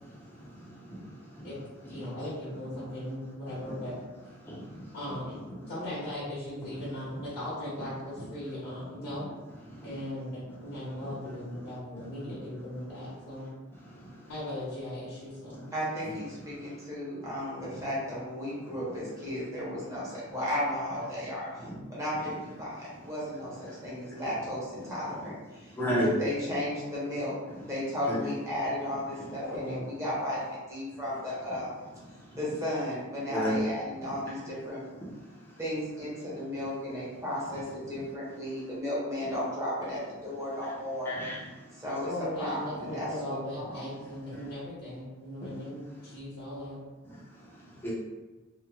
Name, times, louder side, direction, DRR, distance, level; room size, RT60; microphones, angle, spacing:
voice 1, 1.1-1.4 3.7-3.8 4.5-4.8 25.7-26.1 28.1-28.2 33.3-33.6 34.0-34.1 41.1-41.4 47.7-47.9, equal, 10° left, -8 dB, 0.6 m, -31 dB
voice 2, 1.9-3.9 4.9-9.2 9.8-13.4 14.3-15.6 29.4-29.8 42.0-46.8, left 1 dB, 70° left, -9 dB, 1.0 m, -38 dB
voice 3, 15.7-21.5 21.9-22.3 22.6-25.7 26.0-27.3 27.6-31.9 32.3-34.9 35.6-41.2 41.8-42.1 42.4-43.8, left 1 dB, 15° right, -8 dB, 1.0 m, -34 dB
2.9 x 2.3 x 2.3 m, 1.2 s
head